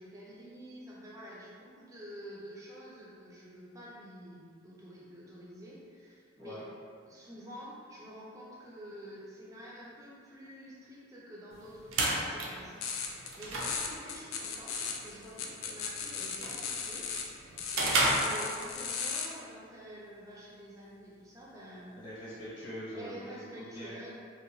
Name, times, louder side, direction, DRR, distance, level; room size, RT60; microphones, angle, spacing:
voice 1, 0.0-6.6 7.1-21.9 22.9-24.2, equal, 15° right, -6 dB, 0.4 m, -48 dB
sound 1, 11.5-19.0, right 2 dB, 75° right, 0.4 m, -34 dB
sound 2, 12.8-13.3 13.6-17.3 17.6-19.3, left 6 dB, 80° left, 0.3 m, -37 dB
voice 2, 22.0-23.9, equal, 25° left, -11 dB, 0.9 m, -43 dB
2.9 x 2.2 x 2.5 m, 2.2 s
head